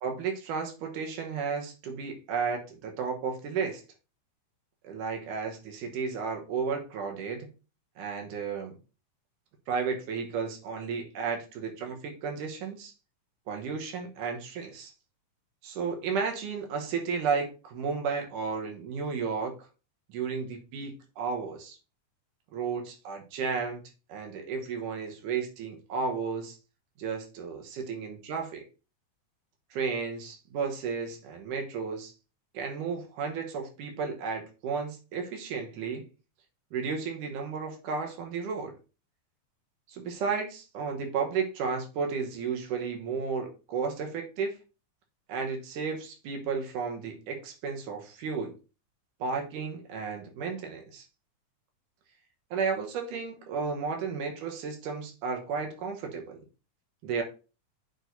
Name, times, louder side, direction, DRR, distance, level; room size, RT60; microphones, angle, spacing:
voice 1, 0.0-3.8 4.8-7.5 8.0-8.7 9.7-12.9 13.5-14.9 15.6-19.5 20.1-21.8 22.5-23.8 24.1-26.6 27.0-28.6 29.7-32.1 32.5-36.1 36.7-38.7 39.9-44.6 45.3-48.5 49.2-51.0 52.5-56.4 57.0-57.2, right 5 dB, 85° right, 3 dB, 2.7 m, -33 dB
8.7 x 4.7 x 2.7 m, 0.32 s
omnidirectional pair, 3.5 m